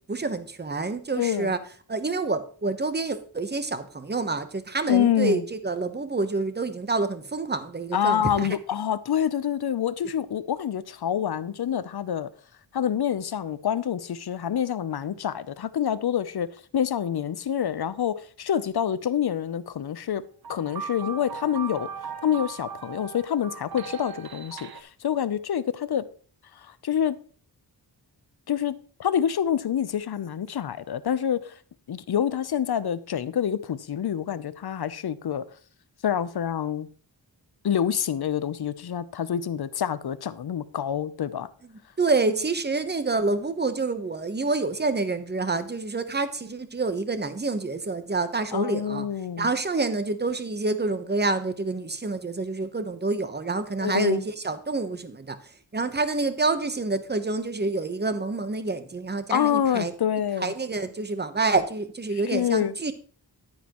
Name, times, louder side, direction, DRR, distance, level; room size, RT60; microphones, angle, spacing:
voice 1, 0.1-1.6 1.9-8.5 42.0-49.0 49.4-55.4 55.7-59.9 60.4-62.9, right 3 dB, 25° right, 0.9 m, -27 dB
voice 2, 1.2-1.5 4.9-5.4 7.9-12.3 12.7-16.5 16.7-20.2 20.5-21.9 22.2-26.0 26.6-27.2 28.5-28.7 29.0-31.5 31.9-35.5 36.0-36.9 37.6-41.5 48.5-49.5 53.8-54.3 59.3-60.5 62.3-62.7, left 9 dB, 65° left, 0.6 m, -27 dB
sound 1, 20.4-24.8, right 7 dB, 60° right, 0.8 m, -38 dB
10.5 x 9.4 x 3.0 m
wide cardioid pair, 115°, 42 cm